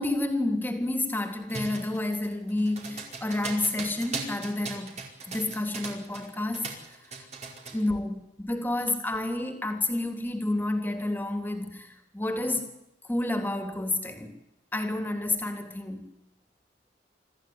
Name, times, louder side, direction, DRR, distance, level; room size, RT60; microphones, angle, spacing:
voice 1, 0.0-5.0 5.3-6.7 7.7-12.7 13.0-14.3 14.7-16.1, left 2 dB, 10° left, 5 dB, 3.3 m, -30 dB
sound 1, 1.5-6.3 6.5-7.8, right 4 dB, 40° right, 4.9 m, -38 dB
25.5 x 14.5 x 9.8 m, 0.89 s
head